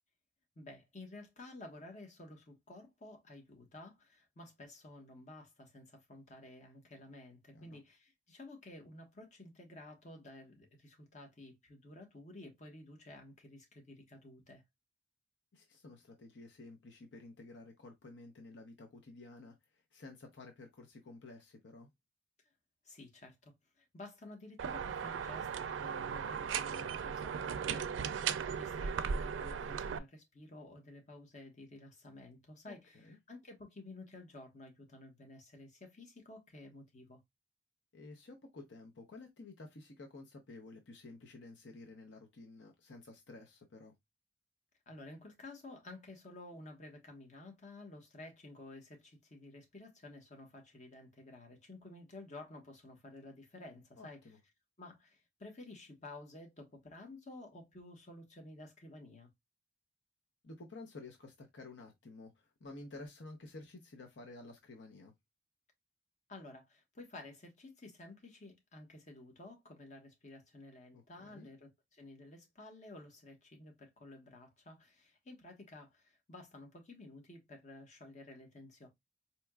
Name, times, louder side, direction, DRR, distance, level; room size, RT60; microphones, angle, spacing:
voice 1, 0.6-14.6 22.8-37.2 44.9-54.2 54.8-59.3 66.3-78.9, left 2 dB, 40° left, 1.1 m, -52 dB
voice 2, 15.5-21.9 32.7-33.2 37.9-43.9 54.0-54.4 60.4-65.1 70.9-71.5, left 2 dB, 70° left, 0.7 m, -52 dB
sound 1, 24.6-30.0, right 7 dB, 90° right, 0.4 m, -37 dB
4.3 x 2.9 x 2.3 m
head